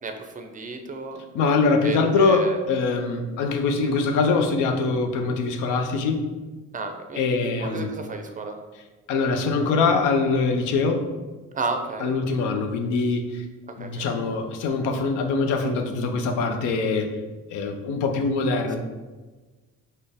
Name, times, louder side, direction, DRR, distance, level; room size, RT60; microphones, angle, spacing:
voice 1, 0.0-1.2 1.8-2.6 6.7-7.2 7.6-8.6 11.5-12.1 13.8-14.0, right 3 dB, 25° right, 5 dB, 0.4 m, -32 dB
voice 2, 1.3-6.2 7.2-7.9 9.1-11.1 12.0-13.5 13.8-17.1 17.5-18.8, left 4 dB, 90° left, 4 dB, 0.5 m, -23 dB
4.1 x 2.1 x 3.4 m, 1.3 s
cardioid pair, 90°, 30 cm